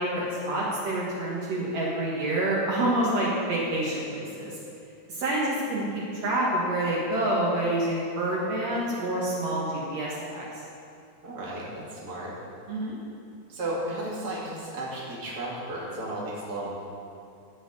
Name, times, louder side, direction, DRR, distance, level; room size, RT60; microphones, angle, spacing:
voice 1, 0.0-4.6 5.1-10.5 12.7-12.9, right 1 dB, 65° right, -6 dB, 2.7 m, -27 dB
voice 2, 11.2-12.3 13.5-16.7, right 1 dB, 35° right, -6 dB, 2.8 m, -34 dB
15.0 x 5.1 x 7.9 m, 2.5 s
omnidirectional pair, 3.4 m